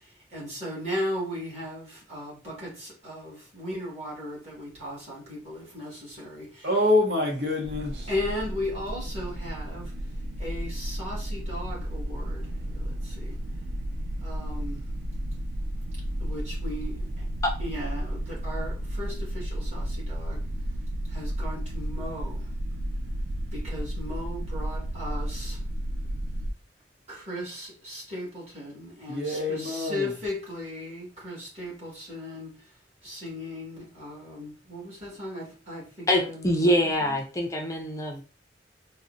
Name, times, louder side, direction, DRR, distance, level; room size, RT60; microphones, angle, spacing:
voice 1, 0.3-6.7 8.1-9.9 10.4-12.5 12.7-13.4 14.2-14.8 16.2-17.0 17.6-20.4 21.1-22.5 23.5-25.6 27.1-32.5 33.0-37.2, left 1 dB, 40° right, 1.6 m, -36 dB
voice 2, 6.6-8.1 29.1-30.1, left 2 dB, 80° right, 0.9 m, -26 dB
sound 1, 7.6-26.5, equal, 65° right, 0.4 m, -33 dB
voice 3, 36.1-38.2, equal, 20° left, 0.4 m, -24 dB
3.8 x 2.1 x 2.5 m
head